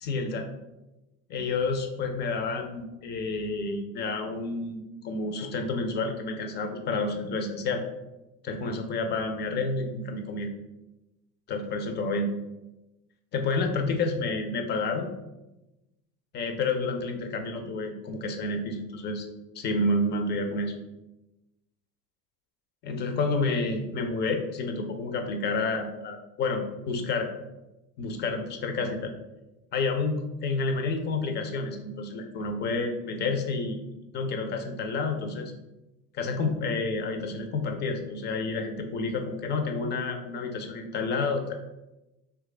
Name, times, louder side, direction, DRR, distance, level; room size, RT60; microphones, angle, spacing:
voice 1, 0.0-0.5 1.3-7.8 8.4-10.5 11.5-12.3 13.3-15.1 16.3-19.3 19.6-20.7 22.8-27.3 28.0-29.1 29.7-33.8 34.1-35.5 36.1-41.6, left 3 dB, 25° left, 5 dB, 0.3 m, -29 dB
2.9 x 2.3 x 3.7 m, 0.99 s
hypercardioid pair, 75°, 48 cm